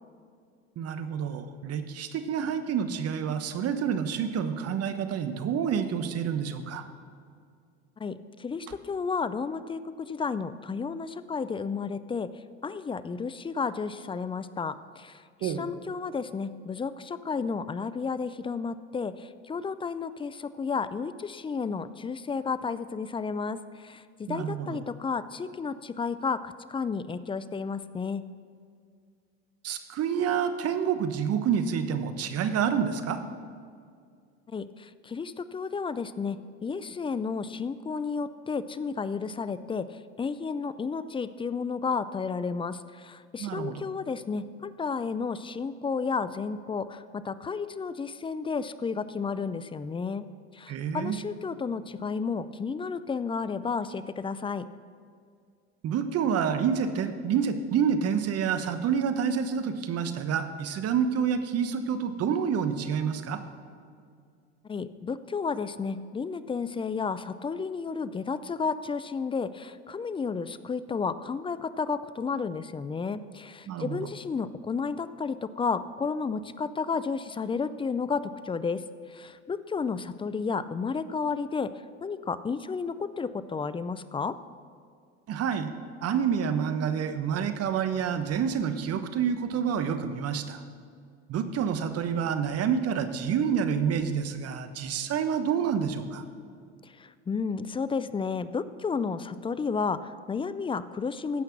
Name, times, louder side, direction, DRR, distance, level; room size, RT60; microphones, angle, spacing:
voice 1, 0.8-6.8 15.4-15.7 24.3-24.8 29.6-33.2 43.4-43.7 50.7-51.2 55.8-63.4 73.7-74.0 85.3-85.7 86.0-90.6 91.3-96.2, right 7 dB, 45° right, 9 dB, 1.1 m, -28 dB
voice 2, 8.0-12.3 12.6-28.2 34.5-50.2 50.5-54.6 64.6-78.8 79.1-81.7 82.0-84.4 96.8-101.4, left 5 dB, 15° left, 14 dB, 0.4 m, -32 dB
15.5 x 5.8 x 5.9 m, 2.2 s
hypercardioid pair, 80°, 33 cm